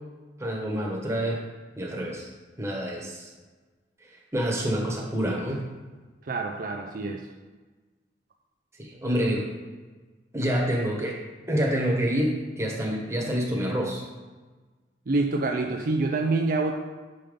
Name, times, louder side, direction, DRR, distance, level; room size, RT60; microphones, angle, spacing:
voice 1, 0.4-1.4 1.8-2.3 2.6-3.3 4.3-5.7 8.8-9.5 10.3-11.2 11.5-14.0, equal, 15° right, -1 dB, 1.3 m, -27 dB
voice 2, 6.2-7.3 15.1-16.7, right 3 dB, 50° right, 2 dB, 0.5 m, -26 dB
7.1 x 5.4 x 5.1 m, 1.3 s
head